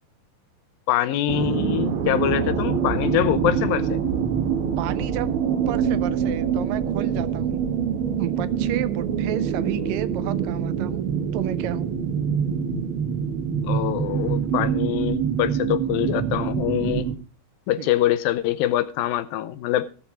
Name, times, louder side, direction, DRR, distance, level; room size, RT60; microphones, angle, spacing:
voice 1, 0.9-4.0 13.6-17.1 17.7-19.9, left 12 dB, 80° left, 2.5 m, -24 dB
sound 1, 1.3-17.2, right 7 dB, 55° right, 1.7 m, -25 dB
voice 2, 4.8-7.7 8.2-11.1 11.3-11.9 17.8-17.9, right 13 dB, 80° right, 2.3 m, -31 dB
17.0 x 6.9 x 4.9 m
omnidirectional pair, 4.2 m